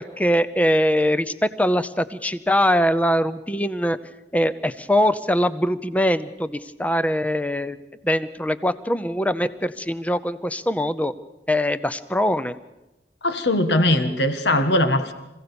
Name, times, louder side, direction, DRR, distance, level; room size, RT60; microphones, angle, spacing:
voice 1, 0.0-4.0 4.3-7.8 8.0-11.1 11.5-12.5, equal, 10° left, 13 dB, 0.7 m, -22 dB
voice 2, 13.2-15.1, left 1 dB, 80° left, 8 dB, 1.6 m, -20 dB
26.0 x 16.5 x 7.0 m, 0.99 s
head